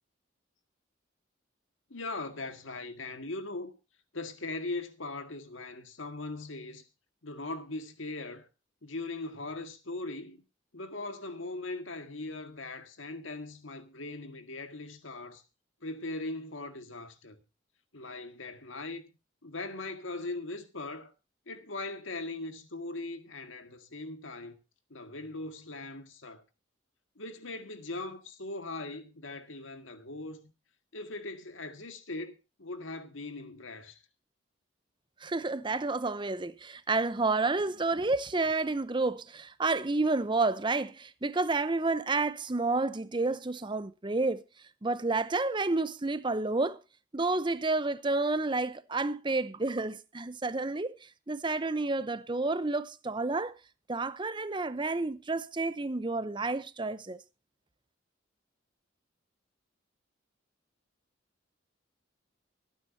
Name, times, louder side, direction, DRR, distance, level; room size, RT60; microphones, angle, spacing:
voice 1, 1.9-3.7 4.1-6.8 7.2-8.5 8.8-10.4 10.7-15.4 15.8-17.4 17.9-19.0 19.4-21.1 21.5-24.6 24.9-26.4 27.2-30.5 30.9-34.0, left 2 dB, 85° left, 1.9 m, -40 dB
voice 2, 35.2-44.4 44.8-46.8 47.1-53.5 53.9-57.2, right 3 dB, 25° right, 0.7 m, -30 dB
24.0 x 9.4 x 2.7 m
head